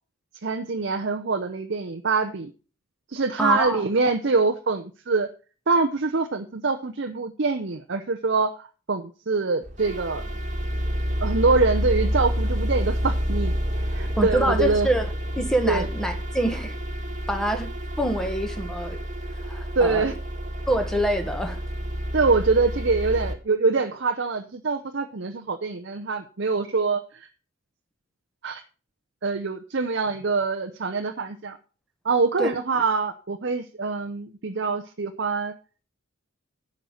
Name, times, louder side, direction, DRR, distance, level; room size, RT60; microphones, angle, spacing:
voice 1, 0.4-2.5 3.1-5.3 5.7-10.2 11.2-14.9 15.7-15.9 19.8-20.1 22.1-27.3 28.4-28.6 29.2-31.6 32.0-35.5, right 4 dB, 55° right, 6 dB, 0.7 m, -24 dB
voice 2, 3.4-3.8 14.2-15.1 15.4-16.8 17.3-17.7 18.0-19.0 19.4-20.1 20.7-21.6 32.4-32.5, right 1 dB, 5° left, 5 dB, 1.3 m, -25 dB
sound 1, 9.6-23.3, equal, 35° right, 1.7 m, -29 dB
10.5 x 5.3 x 6.4 m, 0.36 s
head